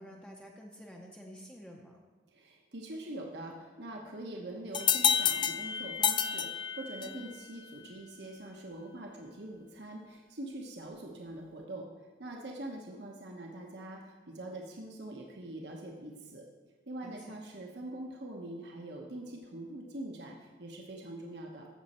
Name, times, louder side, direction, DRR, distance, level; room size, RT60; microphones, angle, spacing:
voice 1, 0.0-2.0 7.0-7.3 17.0-17.3, equal, 5° left, -1 dB, 0.7 m, -49 dB
voice 2, 2.3-6.5 6.8-11.9 12.2-16.4 16.9-21.7, right 1 dB, 70° right, 0 dB, 1.1 m, -43 dB
sound 1, 4.7-7.3, left 8 dB, 25° left, 0.3 m, -29 dB
14.5 x 6.4 x 4.3 m, 1.4 s
head